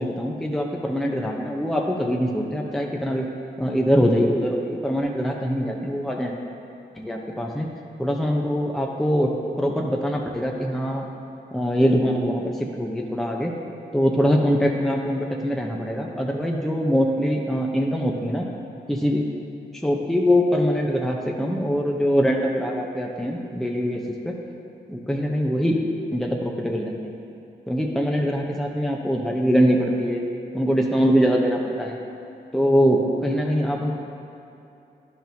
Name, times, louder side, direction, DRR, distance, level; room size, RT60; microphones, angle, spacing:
voice 1, 0.0-3.3 3.6-6.3 6.9-7.7 8.0-9.3 9.6-11.1 11.5-13.5 13.9-18.5 18.9-19.2 19.8-24.4 24.9-25.8 26.1-26.9 27.7-30.2 30.5-32.0 32.5-33.9, equal, ahead, -1 dB, 0.8 m, -23 dB
10.0 x 6.1 x 2.8 m, 2.8 s
supercardioid pair, 45°, 20 cm